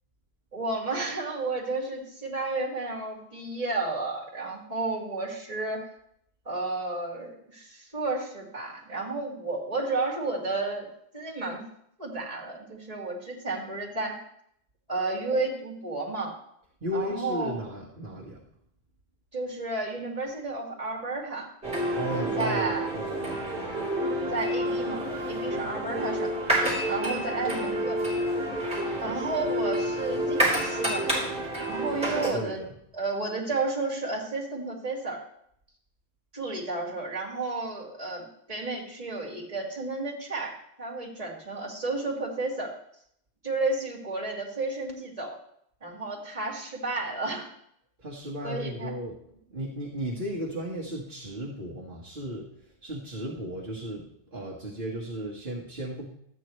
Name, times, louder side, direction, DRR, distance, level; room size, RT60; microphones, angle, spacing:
voice 1, 0.5-5.9 6.5-10.9 11.1-11.6 12.0-14.2 14.9-16.3 16.9-17.6 19.3-21.5 22.1-22.9 24.3-26.3 26.9-28.0 29.0-31.3 31.6-32.6 32.9-35.2 36.3-42.7 43.4-45.4 45.8-47.5 48.4-48.9, right 3 dB, 35° right, -2 dB, 2.3 m, -32 dB
voice 2, 16.8-18.4 21.9-23.8 32.3-32.7 48.0-52.5 52.8-56.0, equal, 55° right, -6 dB, 1.6 m, -35 dB
sound 1, 21.6-32.3, right 1 dB, 5° right, 3.5 m, -29 dB
13.0 x 8.9 x 3.1 m, 0.71 s
omnidirectional pair, 1.1 m